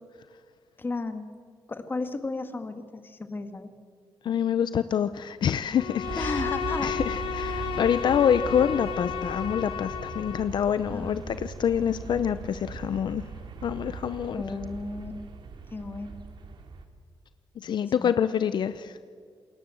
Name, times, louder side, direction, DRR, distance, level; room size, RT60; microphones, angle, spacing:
voice 1, 0.8-1.3 1.7-3.7 6.2-7.0 10.9-11.3 14.3-15.1 15.7-16.2 18.0-18.1, left 3 dB, 25° left, 9 dB, 1.9 m, -34 dB
voice 2, 4.2-6.4 6.8-13.3 13.6-14.4 17.6-19.0, left 8 dB, 60° left, 13 dB, 0.7 m, -26 dB
Bowed string instrument, 5.8-10.6, left 9 dB, 90° left, 1.7 m, -33 dB
sound 1, 6.0-16.8, right 5 dB, 65° right, 2.7 m, -39 dB
28.0 x 21.0 x 7.7 m, 2.1 s
wide cardioid pair, 140°, 9 cm